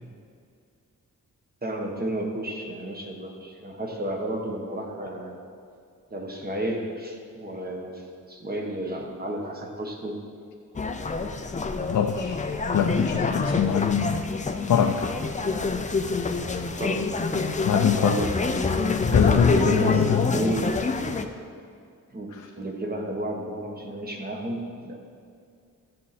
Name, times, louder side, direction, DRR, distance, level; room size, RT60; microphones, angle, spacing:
voice 1, 1.6-5.3 6.1-10.2 16.8-17.1 17.8-18.6 19.5-20.9 22.1-25.0, right 1 dB, 30° right, 1 dB, 1.2 m, -32 dB
sound 1, 10.8-21.3, left 3 dB, 25° left, 0.5 m, -26 dB
voice 2, 11.9-12.4 12.7-14.2 14.7-15.1 17.6-18.2 19.0-20.4, left 8 dB, 65° left, 3 dB, 0.6 m, -23 dB
14.0 x 7.5 x 4.2 m, 2.3 s
wide cardioid pair, 180°, 33 cm